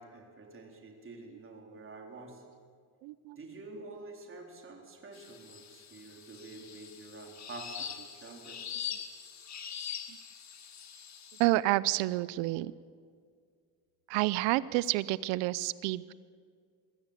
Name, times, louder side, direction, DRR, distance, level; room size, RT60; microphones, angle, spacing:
voice 1, 0.0-2.4 3.4-8.6, right 2 dB, 30° right, 2 dB, 4.0 m, -48 dB
voice 2, 3.0-3.4 10.1-10.2 11.4-12.7 14.1-16.1, right 18 dB, 85° right, 19 dB, 0.7 m, -29 dB
sound 1, 5.1-11.4, left 8 dB, 40° left, 2.2 m, -43 dB
23.0 x 16.0 x 8.2 m, 2.1 s
cardioid pair, 110°, 43 cm